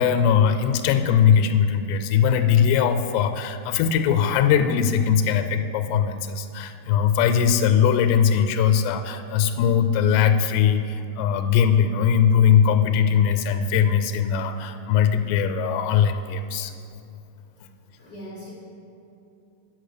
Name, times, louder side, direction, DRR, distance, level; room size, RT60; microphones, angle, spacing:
voice 1, 0.0-16.7, left 8 dB, 85° left, 8 dB, 2.6 m, -20 dB
voice 2, 18.0-18.5, equal, 70° left, -6 dB, 0.9 m, -40 dB
9.3 x 6.0 x 6.6 m, 2.7 s
omnidirectional pair, 4.8 m